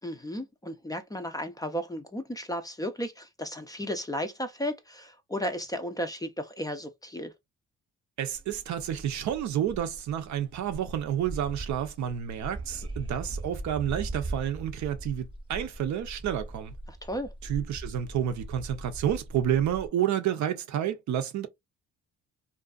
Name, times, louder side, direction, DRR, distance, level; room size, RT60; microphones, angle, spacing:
voice 1, 0.0-7.3 16.9-17.3, equal, 15° left, 0.4 m, -34 dB
voice 2, 8.2-16.7 17.4-21.5, right 10 dB, 70° right, 0.6 m, -30 dB
sound 1, 8.3-19.9, right 2 dB, 15° right, 0.8 m, -40 dB
2.5 x 2.3 x 2.3 m
cardioid pair, 90°, 30 cm